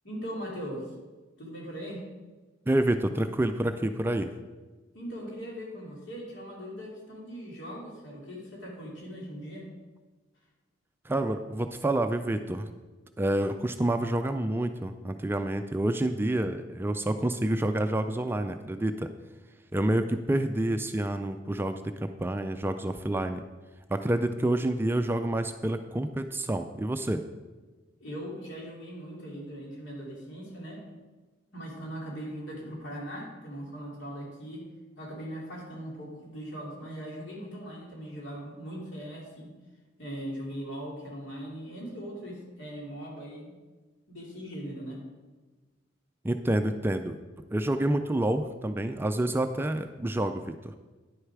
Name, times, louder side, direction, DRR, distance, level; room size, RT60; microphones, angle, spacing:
voice 1, 0.0-0.9 1.4-2.0 4.9-9.7 28.0-30.8 31.5-34.6 35.0-39.5 40.0-43.5 44.1-45.0, equal, 70° left, -3 dB, 2.9 m, -40 dB
voice 2, 2.7-4.3 11.0-12.7 13.2-19.1 19.7-23.4 23.9-27.2 46.2-47.2 47.5-50.8, right 1 dB, 10° right, 8 dB, 0.3 m, -28 dB
10.0 x 6.5 x 4.7 m, 1.3 s
head